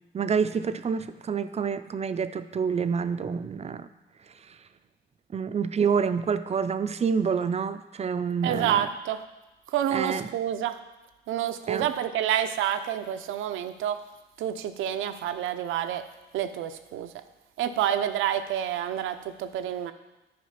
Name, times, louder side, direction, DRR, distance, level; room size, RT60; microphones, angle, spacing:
voice 1, 0.1-3.9 4.5-4.6 5.3-8.9 9.9-10.3 11.7-11.9, right 6 dB, 35° right, 11 dB, 0.5 m, -27 dB
voice 2, 8.4-9.2 9.7-10.8 11.3-14.0 14.4-16.0 16.3-17.1 17.6-19.9, right 10 dB, 85° right, 9 dB, 0.6 m, -28 dB
9.5 x 4.7 x 5.7 m, 1.0 s
cardioid pair, 90°, 20 cm